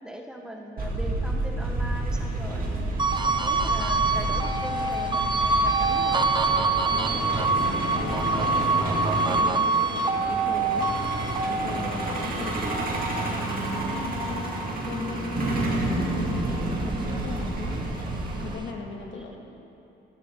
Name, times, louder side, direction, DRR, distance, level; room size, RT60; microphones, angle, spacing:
voice 1, 0.0-3.0 3.4-6.3 12.3-12.7 19.1-19.2, equal, 5° right, 1 dB, 1.2 m, -40 dB
Truck, 0.8-18.5, right 1 dB, 45° right, 2.7 m, -30 dB
sound 1, 3.0-15.6 16.0-17.7, right 3 dB, 25° right, 0.8 m, -26 dB
voice 2, 6.9-11.0 11.5-14.5 14.8-17.9 18.4-19.3, left 4 dB, 70° left, 1 dB, 1.9 m, -39 dB
16.5 x 12.5 x 3.8 m, 2.9 s
cardioid pair, 90°, 20 cm